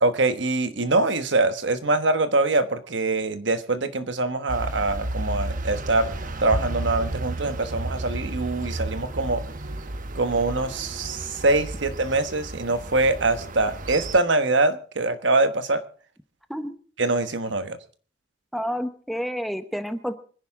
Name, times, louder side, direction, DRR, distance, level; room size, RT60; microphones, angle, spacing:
voice 1, 0.0-6.1 6.4-9.4 10.1-15.8 17.0-17.8, right 2 dB, 70° right, 10 dB, 1.3 m, -23 dB
sound 1, 4.5-14.2, right 2 dB, 45° right, 1.0 m, -32 dB
voice 2, 18.5-20.2, equal, ahead, 9 dB, 0.9 m, -29 dB
25.0 x 10.5 x 3.7 m, 0.43 s
head